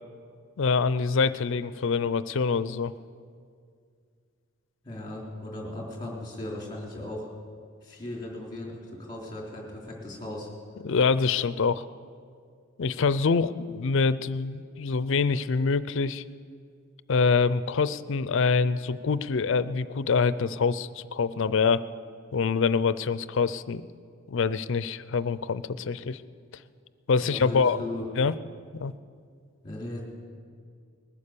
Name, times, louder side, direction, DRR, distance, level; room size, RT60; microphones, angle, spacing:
voice 1, 0.6-2.9 10.8-11.9 12.8-16.2 17.1-21.8 22.3-23.9 24.3-26.2 27.1-27.8 28.2-28.3 28.7-28.9, left 5 dB, 65° left, 15 dB, 0.5 m, -25 dB
voice 2, 4.8-7.3 7.8-10.5 27.2-28.1 29.6-30.0, left 1 dB, 20° left, -2 dB, 3.5 m, -37 dB
20.5 x 9.8 x 6.8 m, 2.2 s
head